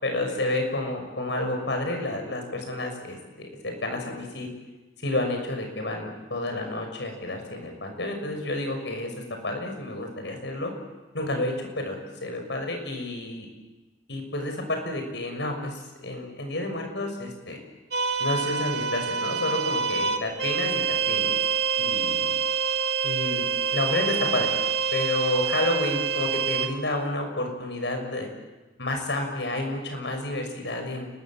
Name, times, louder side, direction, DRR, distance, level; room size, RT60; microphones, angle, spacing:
voice 1, 0.0-4.5 5.0-9.1 9.4-10.7 11.1-13.5 14.1-17.6 18.2-20.8 21.1-21.4 21.7-22.3 23.0-23.5 23.7-24.5 24.9-28.3 28.8-31.1, left 1 dB, 80° left, 4 dB, 6.4 m, -30 dB
sound 1, 17.9-26.7, right 6 dB, 70° right, 2.2 m, -26 dB
29.5 x 21.0 x 7.7 m, 1.1 s
head